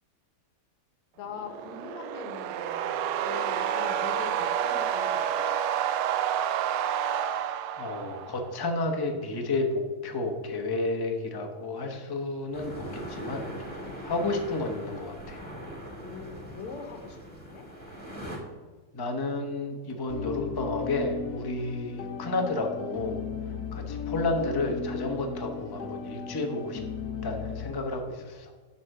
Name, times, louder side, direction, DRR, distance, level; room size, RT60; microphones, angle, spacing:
voice 1, 1.2-5.6 13.8-14.0 16.0-17.7 23.5-23.7, left 5 dB, 85° left, 6 dB, 2.0 m, -42 dB
sound 1, 1.4-8.5, right 9 dB, 80° right, 1.4 m, -29 dB
voice 2, 7.8-15.4 18.9-23.2 23.7-26.8 27.2-28.5, left 2 dB, 35° left, 3 dB, 0.3 m, -31 dB
sound 2, 12.5-18.4, equal, 5° left, 1.4 m, -40 dB
sound 3, 20.1-27.7, left 6 dB, 60° left, 1.1 m, -36 dB
10.5 x 4.3 x 6.6 m, 1.4 s
omnidirectional pair, 2.4 m